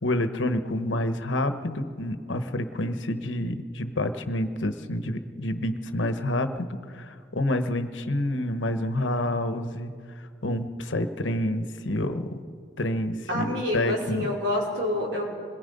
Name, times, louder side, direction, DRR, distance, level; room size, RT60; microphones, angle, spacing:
voice 1, 0.0-9.9 10.2-12.4 12.8-14.4, left 1 dB, 85° left, 9 dB, 1.2 m, -28 dB
voice 2, 13.3-15.2, left 1 dB, 70° right, -3 dB, 4.9 m, -27 dB
26.5 x 21.5 x 5.4 m, 2.3 s
head